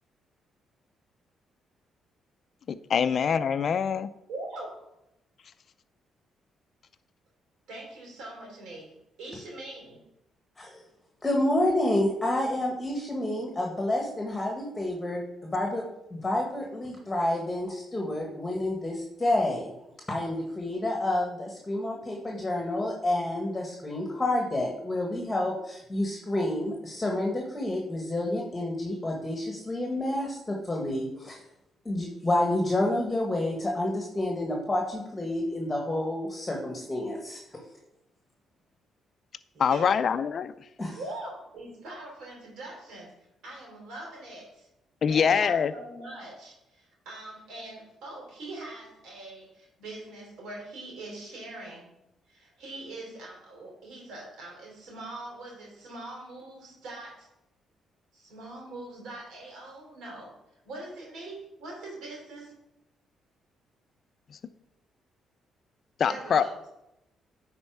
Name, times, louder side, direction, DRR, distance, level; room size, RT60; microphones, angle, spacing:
voice 1, 2.7-4.1 39.6-40.5 45.0-45.7 66.0-66.4, left 7 dB, 55° left, 14 dB, 0.5 m, -24 dB
voice 2, 4.3-4.9 7.7-8.9 9.2-10.0 39.5-40.1 40.9-43.2 43.4-44.7 45.1-51.9 52.3-57.3 58.1-60.4 60.6-62.5 66.0-66.7, right 2 dB, 80° right, -1 dB, 3.1 m, -42 dB
voice 3, 11.2-15.8 16.1-19.7 20.1-31.4 31.8-37.4 40.8-41.0, left 1 dB, 15° left, 0 dB, 1.5 m, -29 dB
9.8 x 4.4 x 4.7 m, 0.87 s
cardioid pair, 90°, 0 cm